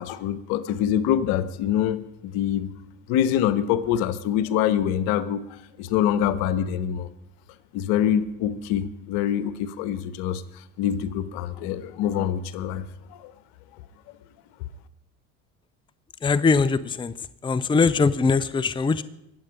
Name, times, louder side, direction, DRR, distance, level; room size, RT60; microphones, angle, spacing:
voice 1, 0.0-2.7 3.1-5.5 5.8-7.1 7.7-10.4 10.8-12.8 13.1-13.3, left 10 dB, 70° left, 15 dB, 1.1 m, -25 dB
voice 2, 16.2-17.1 17.4-19.0, left 4 dB, 15° left, 14 dB, 0.6 m, -21 dB
21.5 x 8.0 x 5.1 m, 0.84 s
hypercardioid pair, 70°, 39 cm